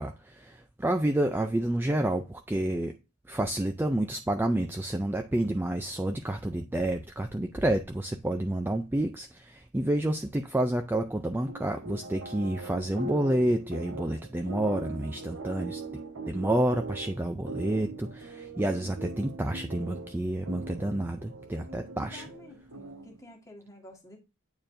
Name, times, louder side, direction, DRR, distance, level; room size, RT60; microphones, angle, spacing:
voice 1, 0.0-3.0 3.3-15.8 16.3-22.2, right 1 dB, 10° right, 0.3 m, -29 dB
sound 1, 11.5-23.2, right 2 dB, 70° right, 1.3 m, -41 dB
voice 2, 21.7-24.2, left 1 dB, 15° left, 1.5 m, -51 dB
8.8 x 4.4 x 2.5 m
head